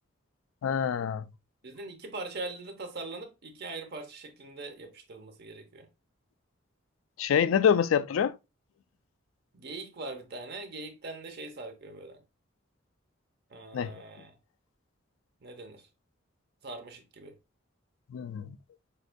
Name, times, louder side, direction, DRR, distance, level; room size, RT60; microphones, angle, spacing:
voice 1, 0.6-1.3 7.2-8.3 13.7-13.9 18.1-18.5, left 7 dB, 85° left, 0.3 m, -26 dB
voice 2, 1.6-5.9 9.5-12.2 13.5-14.4 15.4-15.8 16.6-17.3, right 2 dB, 55° right, 0.8 m, -41 dB
6.3 x 2.6 x 2.2 m
head